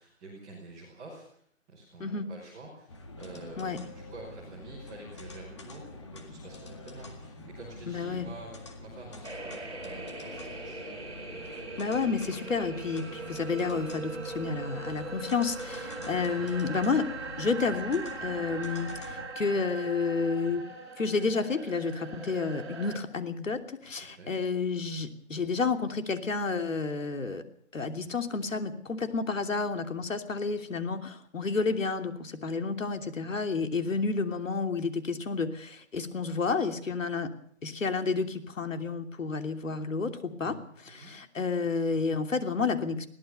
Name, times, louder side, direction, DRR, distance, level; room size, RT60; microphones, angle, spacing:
voice 1, 0.0-1.4 1.7-11.4 16.3-16.5 24.1-24.3 40.4-41.1, right 2 dB, 5° right, -8 dB, 1.0 m, -48 dB
sound 1, 2.9-19.3, left 2 dB, 20° left, 1.9 m, -46 dB
voice 2, 7.9-8.3 11.8-17.1 17.4-20.6 21.0-27.4 27.7-37.3 37.6-40.6 40.8-43.1, left 4 dB, 70° left, 7 dB, 3.1 m, -30 dB
sound 2, 9.2-23.0, right 3 dB, 55° right, 5.6 m, -41 dB
Bowed string instrument, 12.7-17.9, right 4 dB, 35° right, 5.3 m, -53 dB
22.0 x 17.5 x 6.9 m, 0.64 s
hypercardioid pair, 180°, 39 cm